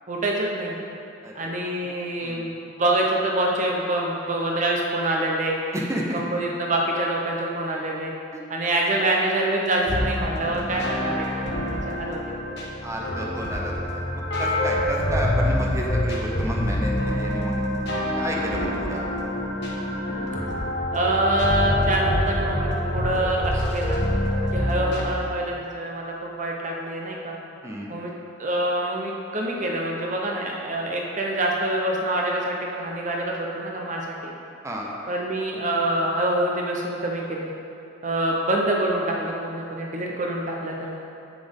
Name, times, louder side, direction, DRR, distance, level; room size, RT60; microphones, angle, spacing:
voice 1, 0.1-0.8 1.3-5.6 6.1-8.1 8.5-12.2 20.9-24.0 24.5-27.4 27.9-28.1 28.4-34.3 35.1-37.5 38.0-41.0, right 1 dB, 40° right, -1 dB, 0.8 m, -26 dB
voice 2, 1.2-1.6 2.2-2.4 5.7-6.2 12.8-17.5 18.2-19.1 27.6-27.9 34.6-34.9, equal, 15° right, -2 dB, 0.9 m, -31 dB
sound 1, 9.9-25.0, left 1 dB, 65° left, 1.3 m, -26 dB
9.0 x 7.6 x 3.6 m, 2.7 s
head